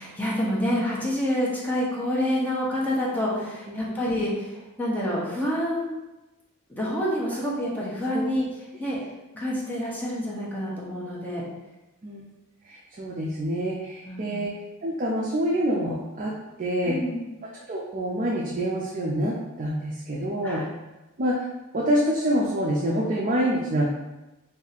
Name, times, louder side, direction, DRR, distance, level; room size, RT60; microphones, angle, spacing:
voice 1, 0.0-5.9 6.7-8.5 8.8-9.0 9.3-11.4 14.0-14.5 16.8-17.2 20.4-20.6, equal, 10° left, -6 dB, 0.7 m, -27 dB
voice 2, 12.7-14.5 14.8-16.3 16.6-17.0 17.7-20.6 21.2-21.5 21.7-23.9, equal, 35° right, -3 dB, 0.4 m, -26 dB
2.6 x 2.4 x 4.0 m, 1.0 s
head